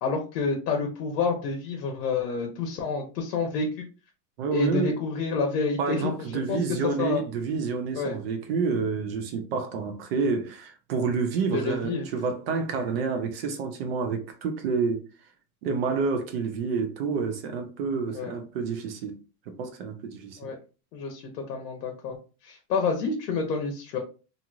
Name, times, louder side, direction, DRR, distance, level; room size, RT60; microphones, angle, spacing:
voice 1, 0.0-3.9 4.5-6.1 6.5-6.6 7.0-7.2 8.0-8.2 11.5-12.0 18.1-18.3 20.4-20.6 20.9-22.2 22.4-24.0, left 4 dB, 85° left, 0.9 m, -28 dB
voice 2, 4.4-4.9 5.8-15.0 15.6-19.1 19.5-20.4, right 5 dB, 40° right, 0.4 m, -29 dB
2.9 x 2.5 x 2.4 m
supercardioid pair, 160°, 48 cm